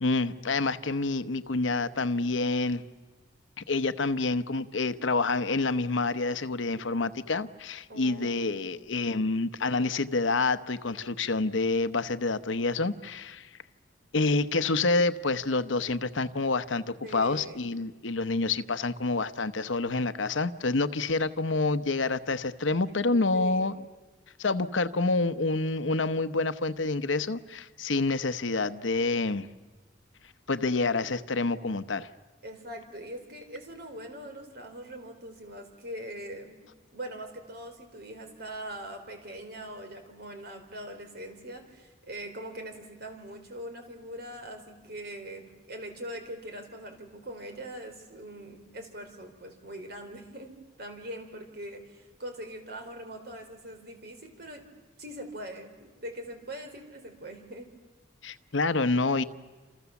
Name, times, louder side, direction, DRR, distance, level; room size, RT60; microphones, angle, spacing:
voice 1, 0.0-2.8 3.7-13.5 14.1-23.7 24.4-29.5 30.5-32.1 58.2-59.2, left 3 dB, 75° left, 12 dB, 0.9 m, -28 dB
voice 2, 7.9-9.1 17.0-17.7 23.3-23.7 32.4-36.6 36.9-54.6 55.0-57.7, right 1 dB, 55° right, 5 dB, 4.1 m, -42 dB
28.0 x 28.0 x 7.1 m, 1.3 s
head